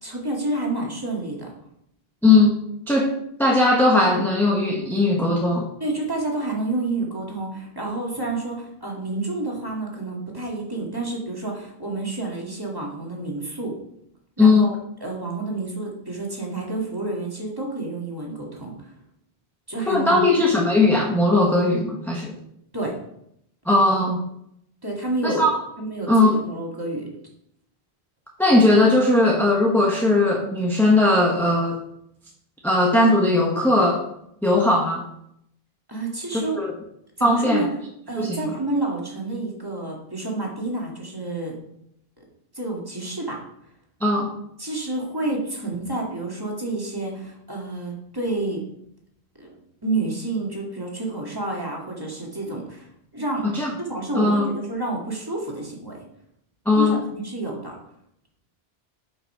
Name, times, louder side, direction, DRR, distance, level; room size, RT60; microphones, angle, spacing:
voice 1, 0.0-1.5 5.8-13.8 14.4-14.8 15.0-18.7 19.7-20.3 22.7-23.0 24.8-25.5 25.8-27.1 35.9-36.6 37.2-37.7 38.1-41.6 42.5-43.4 44.6-48.6 49.4-49.6 49.8-52.9 53.1-53.5 53.8-56.0 56.7-57.8, right 2 dB, 20° right, -2 dB, 2.1 m, -29 dB
voice 2, 2.2-2.6 2.9-3.1 3.4-5.7 14.4-14.7 19.9-22.3 23.7-24.2 25.2-25.5 26.1-26.3 28.4-31.8 32.6-34.0 34.4-35.0 36.3-36.7 37.2-37.7 38.2-38.5 44.0-44.3 53.4-53.7 54.2-54.5 56.7-57.0, left 2 dB, ahead, -2 dB, 1.1 m, -18 dB
8.3 x 5.5 x 5.6 m, 0.75 s
omnidirectional pair, 1.0 m